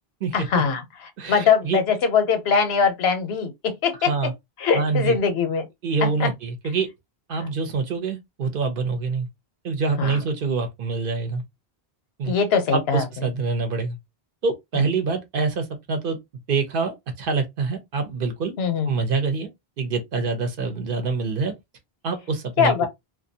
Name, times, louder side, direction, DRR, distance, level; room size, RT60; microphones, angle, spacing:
voice 1, 0.3-0.8 1.3-4.1 4.6-5.6 6.0-6.3 7.4-7.5 10.0-10.2 12.3-13.1 14.7-14.9 18.6-18.9 22.6-22.9, left 6 dB, 85° left, 0.9 m, -21 dB
voice 2, 1.2-1.8 4.1-4.3 4.7-5.2 5.8-6.9 7.3-9.3 9.6-11.4 12.2-12.3 12.7-14.0 14.4-16.2 16.5-18.5 18.8-19.5 19.8-21.5 22.0-22.9, right 4 dB, 60° right, 0.8 m, -25 dB
2.4 x 2.2 x 2.6 m
omnidirectional pair, 1.0 m